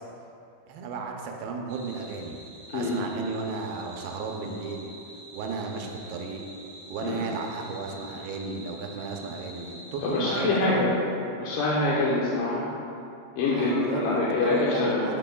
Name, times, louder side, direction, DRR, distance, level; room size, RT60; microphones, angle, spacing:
voice 1, 0.7-2.4 2.7-4.9 5.3-6.5 6.9-10.9 13.5-15.2, right 4 dB, 80° right, 2 dB, 2.6 m, -34 dB
sound 1, 1.7-10.4, right 1 dB, 45° right, 2.1 m, -47 dB
voice 2, 2.7-3.0 7.0-7.2 10.0-11.1 11.4-12.7 13.4-15.0, left 2 dB, 75° left, -6 dB, 2.1 m, -25 dB
12.0 x 6.6 x 2.3 m, 2.6 s
omnidirectional pair, 4.5 m